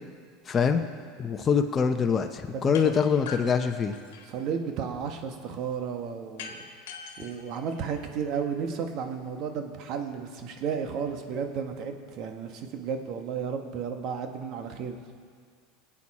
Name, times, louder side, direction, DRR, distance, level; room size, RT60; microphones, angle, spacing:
voice 1, 0.5-0.8 1.2-3.9, left 6 dB, 30° left, 5 dB, 0.8 m, -24 dB
voice 2, 2.5-2.9 4.3-6.5 7.2-15.0, right 6 dB, 55° right, 5 dB, 1.4 m, -33 dB
sound 1, 2.7-2.9 3.3-4.5 6.4-8.4, left 6 dB, 80° left, 1.4 m, -42 dB
21.0 x 8.6 x 4.3 m, 2.1 s
supercardioid pair, 100°, 0 cm